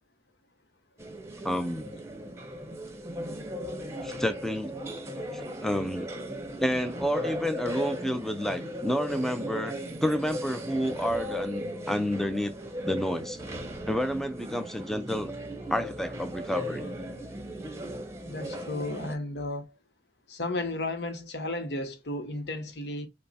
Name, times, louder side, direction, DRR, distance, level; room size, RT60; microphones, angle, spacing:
sound 1, 1.0-19.2, equal, 15° right, 0.8 m, -37 dB
voice 1, 1.4-1.9 4.0-4.7 5.3-6.1 6.6-12.6 12.8-13.4 13.9-15.3 15.7-16.9, equal, ahead, 0.4 m, -30 dB
voice 2, 18.2-19.7 20.3-23.1, left 2 dB, 70° left, 0.9 m, -33 dB
5.5 x 2.1 x 4.1 m
head